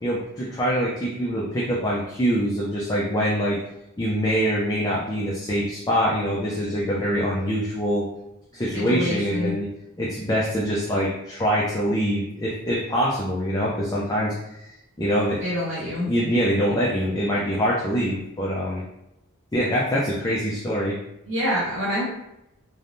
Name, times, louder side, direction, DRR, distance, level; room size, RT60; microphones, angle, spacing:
voice 1, 0.0-3.6 4.0-8.1 8.5-9.7 10.0-14.7 15.0-15.4 15.8-18.8 19.5-21.0, equal, 15° left, -5 dB, 0.4 m, -24 dB
voice 2, 8.7-9.5 15.4-16.1 21.3-22.0, equal, 60° right, -7 dB, 0.9 m, -26 dB
3.3 x 2.1 x 2.6 m, 0.86 s
head